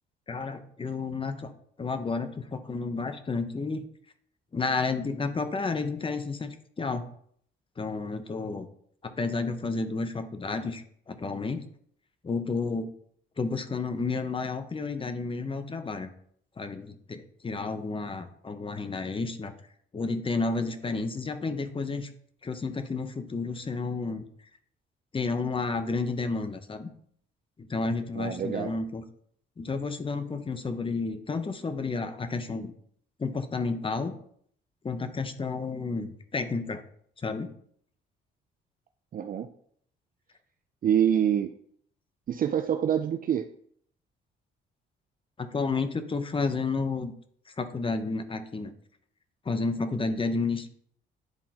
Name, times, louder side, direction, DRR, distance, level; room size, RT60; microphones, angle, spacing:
voice 1, 0.3-1.5 1.8-3.9 4.5-7.1 7.8-8.7 9.0-11.6 12.2-12.9 13.4-16.1 16.6-19.5 19.9-22.1 22.4-24.2 25.1-26.9 27.6-29.0 29.6-32.7 33.2-34.2 34.8-36.8 37.2-37.5 45.4-47.1 47.6-48.7 49.4-50.7, left 4 dB, 25° left, 9 dB, 0.8 m, -31 dB
voice 2, 28.2-28.8 39.1-39.5 40.8-41.5 42.3-43.5, right 9 dB, 45° right, 7 dB, 0.4 m, -26 dB
10.5 x 3.7 x 2.9 m, 0.63 s
cardioid pair, 90°, 20 cm